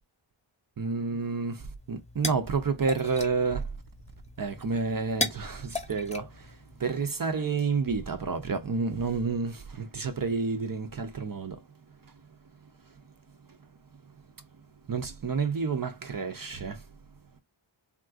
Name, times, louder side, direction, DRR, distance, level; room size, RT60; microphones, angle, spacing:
voice 1, 0.8-1.6 1.9-3.6 4.4-6.5 6.8-11.6 14.9-16.8, right 4 dB, 45° right, 0.5 m, -29 dB
sound 1, 1.8-7.1, left 1 dB, 15° left, 0.7 m, -38 dB
3.5 x 2.4 x 2.4 m
wide cardioid pair, 45°, 50 cm